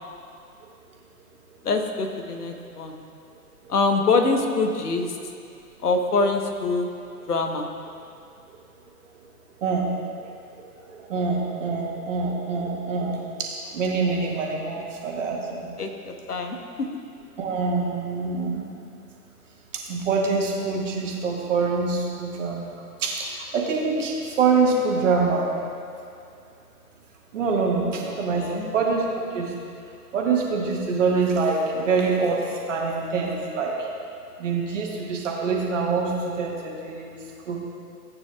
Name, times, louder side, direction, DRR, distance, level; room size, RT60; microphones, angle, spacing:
voice 1, 1.6-3.0 3.7-5.2 5.8-6.9 7.3-7.7 14.8-14.9 15.8-16.9 27.9-28.0 28.3-28.7, left 3 dB, 70° left, 4 dB, 1.2 m, -24 dB
voice 2, 10.5-15.7 17.4-18.6 19.7-25.5 27.3-29.0 29.3-29.5 30.1-33.9 34.4-37.2 37.5-37.6, right 4 dB, 50° right, -1 dB, 1.7 m, -25 dB
16.0 x 8.9 x 2.3 m, 2.5 s
figure-of-eight pair, 125°, 47 cm